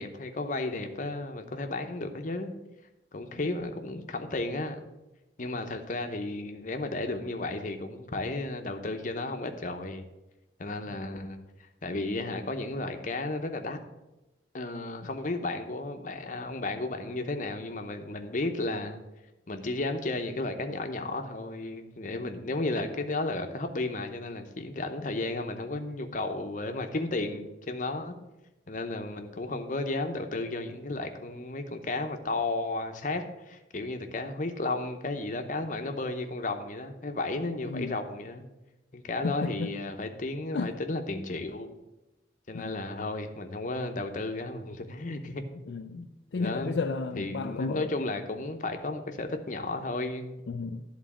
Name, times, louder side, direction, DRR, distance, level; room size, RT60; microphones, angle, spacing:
voice 1, 0.0-2.5 3.1-4.8 5.4-10.0 10.6-11.4 11.8-13.8 14.5-19.0 19.5-28.1 28.7-38.5 38.9-41.7 42.5-45.4 46.0-46.1 46.4-46.8 47.2-50.3, left 2 dB, 45° left, 6 dB, 0.8 m, -33 dB
voice 2, 39.2-39.7 40.5-40.7 42.5-42.6 45.7-46.0 46.3-47.9 50.5-50.8, left 4 dB, 75° left, 6 dB, 0.4 m, -32 dB
11.0 x 4.0 x 7.2 m, 1.0 s
head